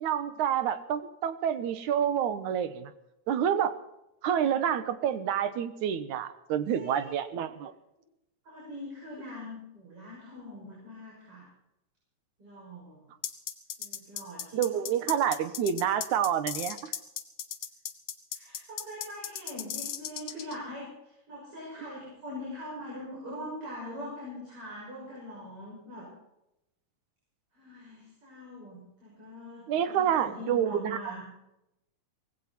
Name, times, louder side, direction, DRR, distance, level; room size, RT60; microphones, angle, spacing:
voice 1, 0.0-2.9 3.3-3.7 4.2-7.7 14.5-16.9 29.7-31.0, right 9 dB, 80° right, 12 dB, 2.5 m, -28 dB
voice 2, 6.7-7.4 8.4-11.5 12.4-13.0 13.8-14.6 18.3-26.1 27.5-31.2, left 1 dB, 45° right, -5 dB, 7.2 m, -42 dB
sound 1, 13.2-20.6, left 10 dB, 65° left, 2.4 m, -36 dB
18.5 x 16.5 x 4.3 m, 0.86 s
omnidirectional pair, 3.5 m